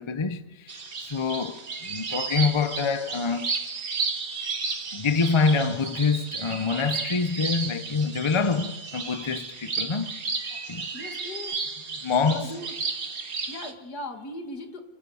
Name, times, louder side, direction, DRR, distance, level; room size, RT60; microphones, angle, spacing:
voice 1, 0.0-3.5 4.9-10.2 10.7-10.9 12.0-12.5, left 4 dB, 30° left, 0.5 m, -26 dB
sound 1, 0.7-13.7, right 4 dB, 55° right, 2.3 m, -33 dB
voice 2, 10.9-11.5 12.2-12.7 13.4-14.8, left 1 dB, 65° left, 2.7 m, -38 dB
29.5 x 16.5 x 7.1 m
omnidirectional pair, 1.8 m